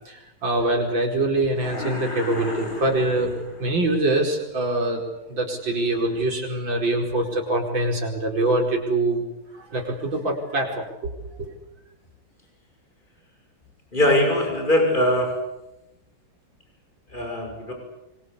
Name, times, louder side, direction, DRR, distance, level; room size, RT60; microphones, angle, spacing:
voice 1, 0.4-3.3 3.6-5.0 5.3-9.2 9.7-11.1 11.5-11.6, right 2 dB, 65° right, 1 dB, 5.6 m, -24 dB
sound 1, 1.5-3.9, left 2 dB, 80° left, 6.7 m, -35 dB
voice 2, 13.9-15.4 17.1-17.7, left 1 dB, 20° left, 3 dB, 6.1 m, -21 dB
26.0 x 23.0 x 8.5 m, 0.93 s
omnidirectional pair, 2.2 m